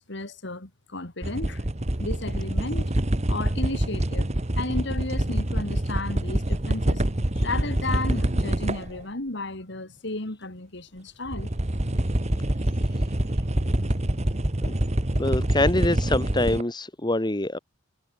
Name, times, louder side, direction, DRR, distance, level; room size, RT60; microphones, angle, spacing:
voice 1, 0.1-1.6 2.0-2.9 3.3-4.3 4.6-7.0 7.3-11.5, left 2 dB, 65° left, 2.8 m, -33 dB
sound 1, 1.2-9.0 11.3-16.6, right 1 dB, 35° right, 1.5 m, -26 dB
voice 2, 15.2-17.6, left 1 dB, 25° left, 1.9 m, -25 dB
head